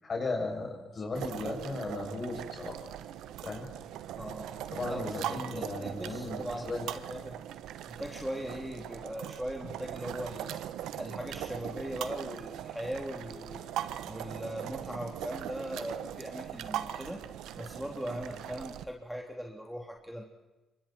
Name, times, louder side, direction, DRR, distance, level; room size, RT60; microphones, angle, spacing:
voice 1, 0.0-2.8 3.4-3.7 4.7-6.9, left 3 dB, 40° left, 1 dB, 7.8 m, -36 dB
sound 1, 1.1-18.8, right 11 dB, 90° right, 1.2 m, -40 dB
voice 2, 4.1-4.5 4.9-7.4 7.9-10.6 10.9-13.7 14.0-17.3 17.6-20.2, equal, 5° right, 1 dB, 3.4 m, -40 dB
28.0 x 25.0 x 4.6 m, 1.1 s
cardioid pair, 90°, 0 cm